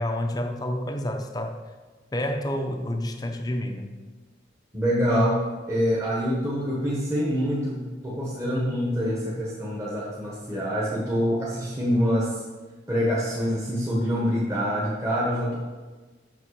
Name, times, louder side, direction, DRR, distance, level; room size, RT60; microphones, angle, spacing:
voice 1, 0.0-1.6 2.1-4.0, left 1 dB, 20° left, 5 dB, 0.6 m, -29 dB
voice 2, 4.7-12.3 12.9-15.6, equal, 15° right, -5 dB, 1.2 m, -25 dB
7.4 x 6.1 x 4.9 m, 1.3 s
head